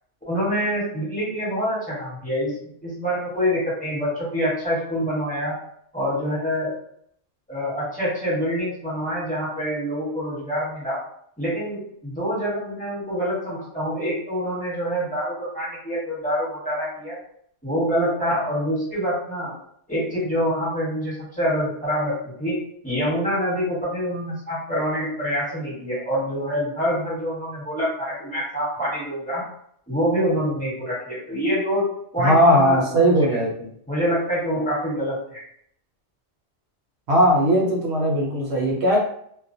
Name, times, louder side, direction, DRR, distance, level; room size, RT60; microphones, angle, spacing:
voice 1, 0.3-2.5 2.8-5.5 5.9-6.7 7.5-11.0 11.4-17.2 17.6-19.5 19.9-29.4 29.9-31.9 32.1-33.1 33.9-35.4, equal, 5° left, -8 dB, 1.0 m, -26 dB
voice 2, 32.2-33.7 37.1-39.0, equal, 70° right, -2 dB, 0.9 m, -18 dB
2.3 x 2.1 x 2.6 m, 0.67 s
omnidirectional pair, 1.2 m